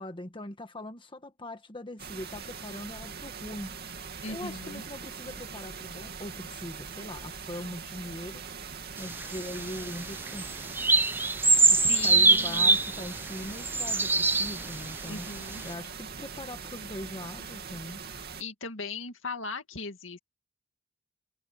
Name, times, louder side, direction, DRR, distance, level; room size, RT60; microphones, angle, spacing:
voice 1, 0.0-3.8 4.2-10.5 11.6-15.3 15.6-18.0, left 1 dB, 25° left, 1.4 m, -41 dB
sound 1, 2.0-18.4, right 6 dB, 50° right, 2.6 m, -42 dB
voice 2, 4.2-4.8 11.8-12.8 15.1-15.6 18.4-20.2, left 4 dB, 70° left, 2.3 m, -38 dB
sound 2, 9.0-15.0 15.5-15.6, right 3 dB, 10° right, 0.8 m, -24 dB
head